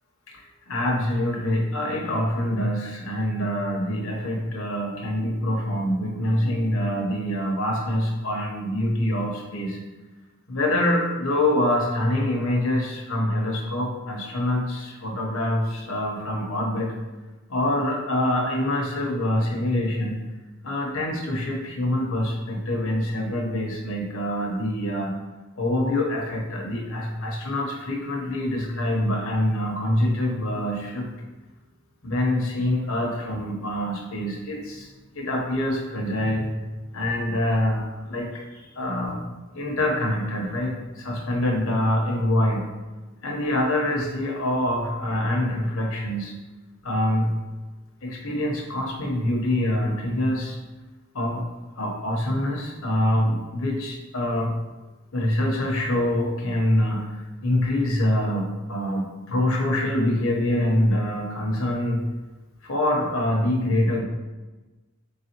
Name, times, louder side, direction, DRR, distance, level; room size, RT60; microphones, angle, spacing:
voice 1, 0.3-9.8 10.5-16.9 17.5-20.2 20.6-25.1 25.6-31.1 32.0-34.9 35.1-36.4 36.9-39.3 39.5-42.6 43.2-46.3 46.8-47.3 48.0-50.6 51.1-51.4 51.8-54.5 55.1-62.0 62.6-64.0, left 1 dB, 85° left, -1 dB, 0.9 m, -25 dB
4.0 x 3.5 x 2.9 m, 1.2 s
head